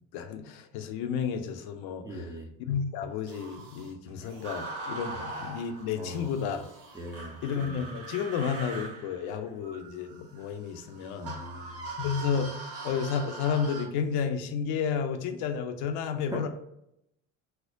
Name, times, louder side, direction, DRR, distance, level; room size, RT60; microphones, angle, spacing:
voice 1, 0.0-2.3 2.6-6.7 7.4-11.4 11.6-12.6 12.8-16.5, left 6 dB, 70° left, 7 dB, 0.6 m, -32 dB
voice 2, 2.0-2.5 5.1-5.2 6.0-6.2 6.9-7.4 11.2-11.9 16.3-16.5, equal, 10° right, 1 dB, 0.5 m, -40 dB
sound 1, 3.1-7.9, right 3 dB, 90° right, 0.7 m, -54 dB
sound 2, 4.4-6.1 7.1-13.8, right 3 dB, 35° right, 1.0 m, -41 dB
4.3 x 2.1 x 2.6 m, 0.79 s
supercardioid pair, 95°, 39 cm